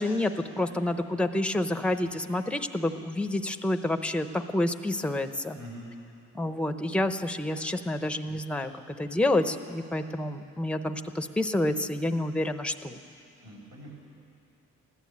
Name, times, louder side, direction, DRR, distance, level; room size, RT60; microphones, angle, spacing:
voice 1, 0.0-5.6 6.3-8.7 9.0-13.0, left 1 dB, 5° left, 8 dB, 0.7 m, -28 dB
voice 2, 5.5-6.0 13.1-13.9, equal, 65° right, -3 dB, 5.2 m, -45 dB
15.0 x 11.5 x 8.5 m, 2.6 s
cardioid pair, 90°, 30 cm